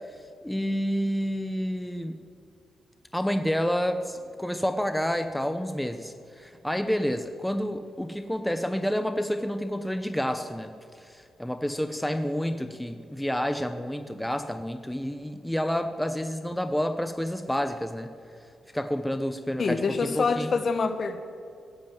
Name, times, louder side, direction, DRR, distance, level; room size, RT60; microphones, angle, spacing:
voice 1, 0.4-2.1 3.1-10.7 11.0-18.1 18.7-20.5, equal, 5° left, 9 dB, 0.7 m, -29 dB
voice 2, 19.6-21.2, left 4 dB, 50° left, 9 dB, 1.1 m, -26 dB
16.0 x 7.4 x 9.1 m, 2.4 s
cardioid pair, 105°, 0 cm